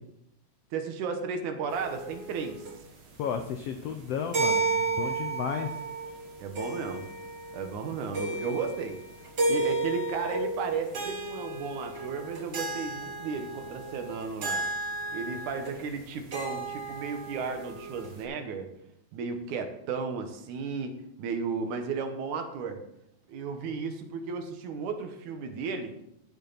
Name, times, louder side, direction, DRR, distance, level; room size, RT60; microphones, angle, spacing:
voice 1, 0.7-2.7 6.4-7.1 7.5-9.0 9.5-14.6 15.1-18.7 19.1-22.8 23.3-26.0, right 5 dB, 70° right, 6 dB, 2.5 m, -34 dB
sound 1, 1.7-18.2, right 3 dB, 40° right, 1.7 m, -33 dB
voice 2, 3.2-5.7, left 7 dB, 85° left, 6 dB, 1.3 m, -33 dB
14.5 x 7.0 x 4.0 m, 0.79 s
omnidirectional pair, 3.7 m